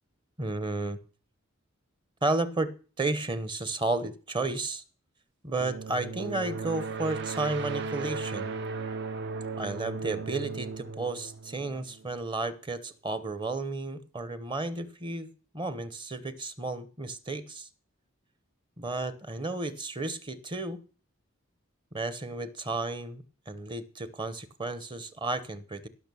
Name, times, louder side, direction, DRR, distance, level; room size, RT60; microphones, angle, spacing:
voice 1, 0.4-1.0 2.2-2.7 3.0-4.8 5.4-8.6 9.6-15.3 15.5-17.7 18.8-20.8 21.9-25.9, right 2 dB, 25° right, 14 dB, 0.9 m, -33 dB
sound 1, 5.6-12.3, right 4 dB, 55° right, 0.7 m, -36 dB
17.0 x 6.4 x 6.9 m, 0.38 s
head